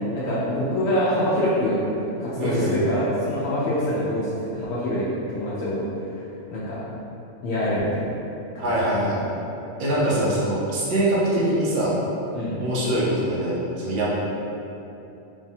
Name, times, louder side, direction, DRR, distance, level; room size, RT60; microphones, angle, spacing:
voice 1, 0.1-1.8 2.2-5.1 5.3-5.8 6.5-6.8 7.4-8.0 8.5-8.7 12.3-12.6, equal, 85° left, -9 dB, 1.0 m, -25 dB
voice 2, 2.4-2.8 8.6-9.2 9.8-11.9 12.6-14.1, right 1 dB, 50° right, -7 dB, 0.7 m, -23 dB
3.4 x 2.1 x 2.6 m, 2.8 s
omnidirectional pair, 1.3 m